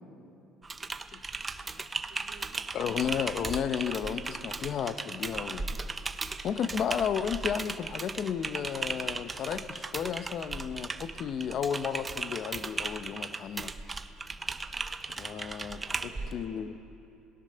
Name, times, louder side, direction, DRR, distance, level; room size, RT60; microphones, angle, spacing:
Typing, 0.6-16.3, right 3 dB, 15° right, 0.6 m, -37 dB
voice 1, 1.3-2.7 15.3-16.4, right 6 dB, 75° right, 1 dB, 3.0 m, -56 dB
voice 2, 2.7-5.8 6.4-13.7 15.2-16.8, left 8 dB, 40° left, 12 dB, 0.7 m, -33 dB
22.0 x 17.5 x 6.7 m, 2.8 s
cardioid pair, 165°, 0 cm